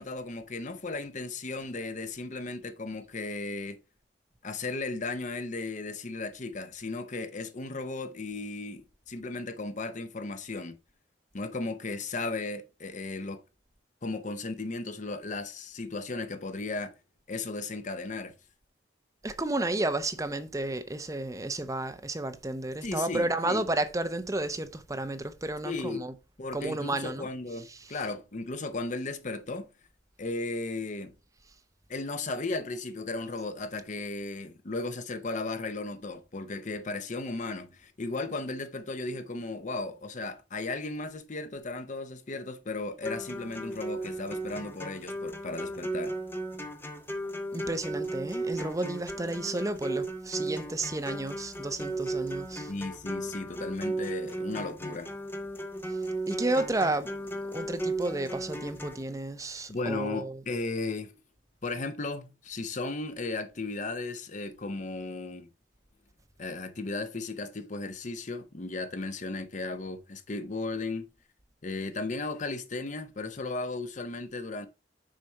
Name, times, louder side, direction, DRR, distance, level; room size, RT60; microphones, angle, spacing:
voice 1, 0.0-3.8 4.4-10.8 11.3-13.4 14.0-16.9 17.3-18.3 22.8-23.7 25.6-26.1 26.4-29.7 30.2-31.2 31.9-46.2 52.7-55.1 59.7-61.1 61.6-65.5 66.4-71.1 71.6-74.7, left 3 dB, 40° left, 0.7 m, -35 dB
voice 2, 19.2-26.1 26.5-28.1 47.5-52.7 55.9-56.0 56.3-57.1 57.5-60.4, right 2 dB, 15° right, 0.6 m, -32 dB
sound 1, 43.0-59.0, right 2 dB, 10° left, 0.8 m, -36 dB
6.5 x 4.2 x 4.6 m
head